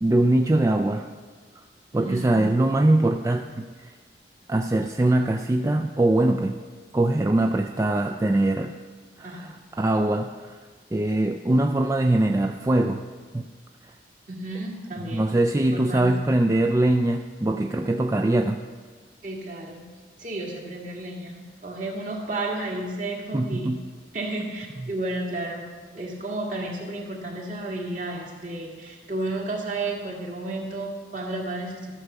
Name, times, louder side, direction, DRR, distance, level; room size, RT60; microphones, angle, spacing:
voice 1, 0.0-1.1 1.9-3.9 4.5-6.6 6.9-8.8 9.2-10.6 10.9-13.0 13.3-13.5 15.1-18.6 23.3-23.8 24.8-24.9, right 1 dB, 15° right, 4 dB, 0.3 m, -22 dB
voice 2, 1.9-2.4 9.2-9.5 14.3-15.2 15.7-16.1 19.2-19.8 20.2-23.7 24.1-25.7 25.9-31.9, right 2 dB, 45° right, -1 dB, 1.9 m, -32 dB
13.0 x 5.9 x 6.7 m, 1.5 s
head